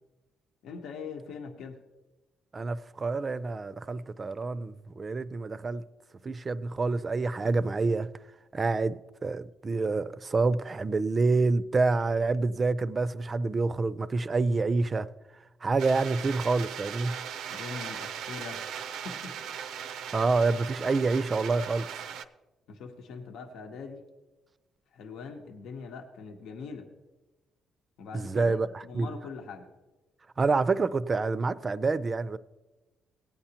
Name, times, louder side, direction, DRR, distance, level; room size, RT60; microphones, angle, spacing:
voice 1, 0.6-1.8 17.5-19.4 22.7-24.0 24.9-26.9 28.0-29.7, left 5 dB, 80° left, 1.0 m, -42 dB
voice 2, 2.5-5.8 6.2-8.1 8.5-15.1 15.6-17.1 20.1-21.9 28.1-28.7 28.9-29.1 30.4-32.4, right 3 dB, 35° right, 0.4 m, -27 dB
sound 1, 15.8-22.2, right 8 dB, 85° right, 0.5 m, -38 dB
16.0 x 8.8 x 2.9 m
cardioid pair, 90°, 0 cm